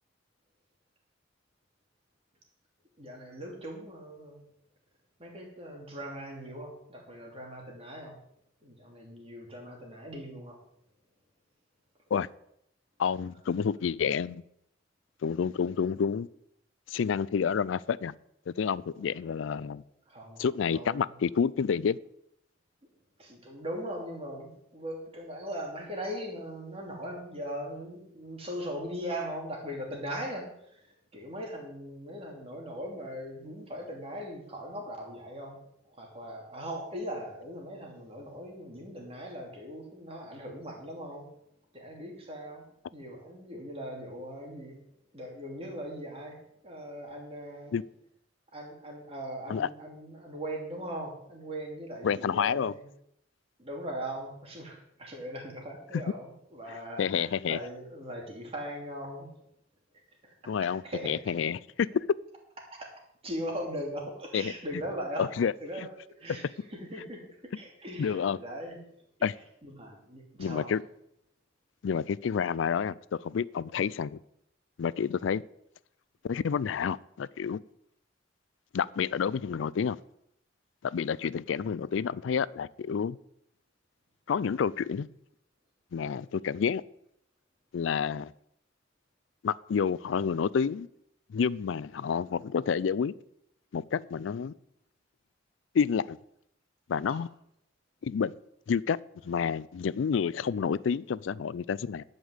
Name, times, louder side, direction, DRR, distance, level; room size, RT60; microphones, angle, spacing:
voice 1, 3.0-4.5 5.2-8.2 8.6-10.6 18.9-19.1 19.4-19.8 20.1-21.1 23.2-41.3 41.7-44.8 45.1-47.7 48.5-52.8 53.6-59.4 60.2-60.3 60.8-61.4 62.8-62.9 63.2-65.3 65.6-65.9 66.2-69.0 69.6-70.7 97.1-97.2, equal, 30° right, 2.9 m, -40 dB
voice 2, 13.0-14.4 15.2-16.3 16.9-18.1 18.5-19.8 20.4-22.0 47.7-47.8 49.5-49.7 52.0-52.7 57.0-57.6 60.5-62.0 64.3-64.5 65.2-65.5 68.0-68.4 69.2-69.3 70.4-70.8 71.8-74.2 74.8-75.4 76.3-77.6 78.7-80.0 80.9-83.2 84.3-85.1 85.9-86.8 87.7-88.3 89.4-90.9 91.3-93.1 93.7-94.5 95.7-96.2 96.9-97.3 98.0-98.4 98.7-99.0 99.2-102.0, left 6 dB, 90° left, 0.4 m, -29 dB
11.5 x 5.3 x 8.1 m
head